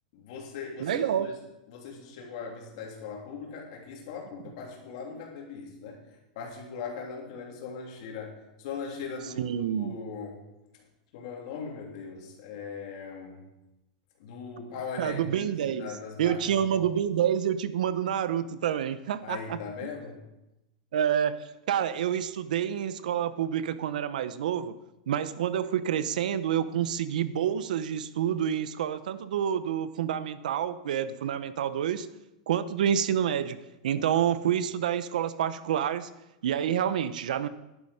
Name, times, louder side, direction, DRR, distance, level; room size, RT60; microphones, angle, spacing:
voice 1, 0.1-1.3 1.7-6.0 6.3-10.4 11.1-13.5 14.2-16.9 19.2-20.2, left 5 dB, 50° left, 0 dB, 3.0 m, -40 dB
voice 2, 0.8-1.3 9.4-10.0 15.0-15.9 16.2-19.6 20.9-21.4 21.7-24.7 25.1-32.1 32.5-33.6 33.8-36.1 36.4-37.5, right 9 dB, 85° right, 14 dB, 0.8 m, -28 dB
11.0 x 9.6 x 5.0 m, 0.94 s
supercardioid pair, 175°, 4 cm